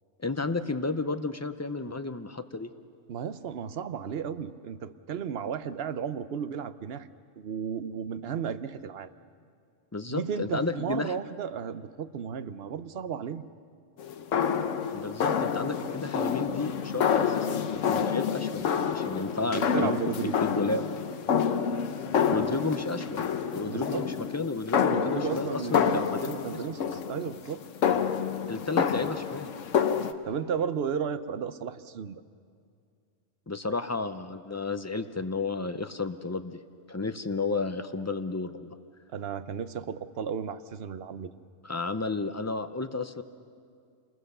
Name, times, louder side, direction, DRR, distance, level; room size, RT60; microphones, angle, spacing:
voice 1, 0.2-2.7 9.9-11.1 14.9-20.0 20.4-20.8 22.3-23.3 23.5-26.6 28.5-29.5 33.5-36.6 36.9-38.8 41.6-43.2, left 3 dB, 20° left, 9 dB, 0.4 m, -32 dB
voice 2, 3.1-7.1 7.4-9.1 10.1-13.5 19.4-20.4 23.7-24.1 24.9-27.6 30.2-32.2 39.1-41.3, right 7 dB, 60° right, 12 dB, 0.9 m, -34 dB
sound 1, 14.0-30.1, left 7 dB, 85° left, 1.2 m, -28 dB
28.0 x 20.5 x 6.7 m, 2.3 s
omnidirectional pair, 1.3 m